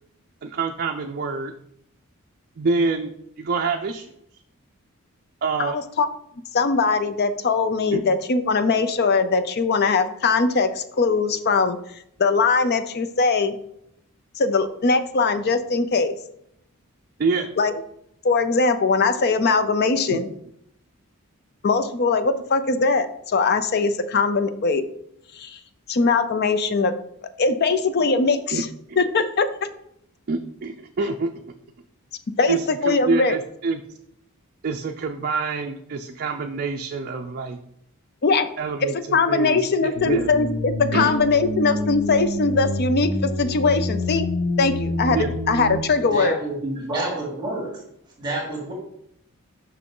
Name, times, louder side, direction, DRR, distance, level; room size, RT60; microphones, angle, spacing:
voice 1, 0.4-1.5 2.6-4.1 5.4-5.8 7.9-8.0 17.2-17.5 20.1-20.2 28.5-28.6 28.9-29.0 30.3-31.3 32.5-33.8 34.6-37.6 38.6-40.3 40.9-41.1 45.1-45.3, right 4 dB, 45° right, 3 dB, 0.4 m, -26 dB
voice 2, 5.6-6.1 6.5-11.8 12.2-13.6 14.4-16.2 17.6-17.7 18.2-20.3 21.6-24.8 25.4-25.6 25.9-26.9 27.4-28.7 29.0-29.5 32.4-33.4 38.2-38.5 38.8-44.3 44.6-46.3, left 4 dB, 45° left, 11 dB, 0.5 m, -21 dB
sound 1, 39.9-45.8, left 1 dB, 70° left, 1.1 m, -27 dB
voice 3, 46.0-47.8 48.2-48.7, right 2 dB, 20° right, -3 dB, 1.9 m, -29 dB
6.1 x 5.6 x 3.7 m, 0.74 s
head